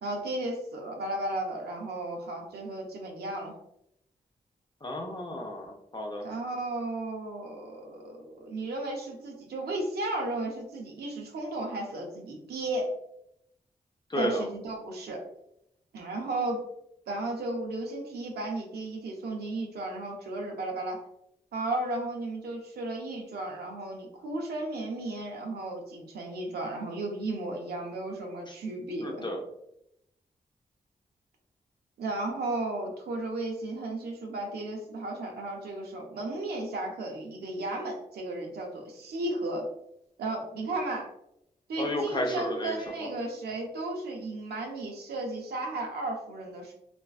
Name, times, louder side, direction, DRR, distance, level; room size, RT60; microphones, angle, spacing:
voice 1, 0.0-3.6 6.2-12.9 14.1-15.2 15.9-16.6 17.1-21.0 21.5-29.3 32.0-39.6 40.2-41.1 41.7-46.7, right 2 dB, 85° right, 1 dB, 0.6 m, -34 dB
voice 2, 4.8-6.2 14.1-14.5 28.5-28.6 29.0-29.4 41.8-43.1, left 1 dB, 30° left, 2 dB, 0.6 m, -32 dB
2.5 x 2.2 x 2.4 m, 0.78 s
supercardioid pair, 40°, 16 cm